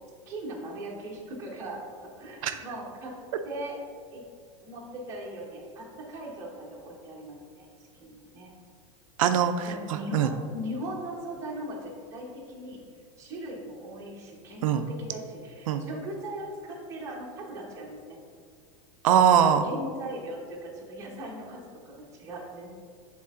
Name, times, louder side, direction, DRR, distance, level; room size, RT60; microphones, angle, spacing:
voice 1, 0.3-3.1 3.4-3.8 4.1-4.2 4.6-7.7 8.0-8.5 9.7-12.8 13.2-18.2 19.6-22.7, right 1 dB, 15° right, -3 dB, 1.0 m, -39 dB
voice 2, 9.2-10.3 14.6-14.8 15.7-15.8 19.0-19.6, right 8 dB, 90° right, 7 dB, 0.4 m, -22 dB
8.8 x 3.7 x 3.6 m, 2.1 s
supercardioid pair, 175°, 17 cm